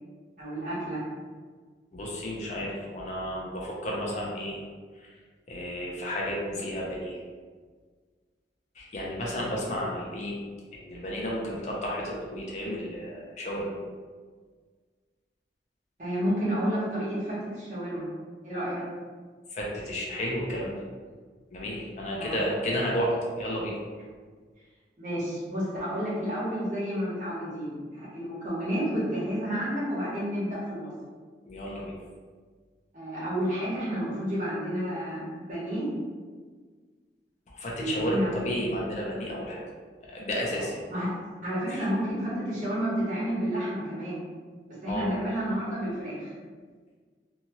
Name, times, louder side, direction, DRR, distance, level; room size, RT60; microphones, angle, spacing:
voice 1, 0.4-1.0 16.0-18.1 18.4-18.8 22.2-22.3 25.0-30.9 32.9-35.9 37.7-38.5 40.5-41.1 41.4-44.2 44.8-46.3, equal, 45° right, -8 dB, 1.1 m, -30 dB
voice 2, 1.9-4.6 5.0-5.1 5.5-7.2 8.7-10.4 10.7-13.8 19.5-20.8 21.5-23.8 31.5-32.0 37.5-39.6 40.0-40.8 41.7-41.8 44.9-45.1, equal, 40° left, -3 dB, 0.5 m, -32 dB
2.7 x 2.4 x 2.9 m, 1.5 s
head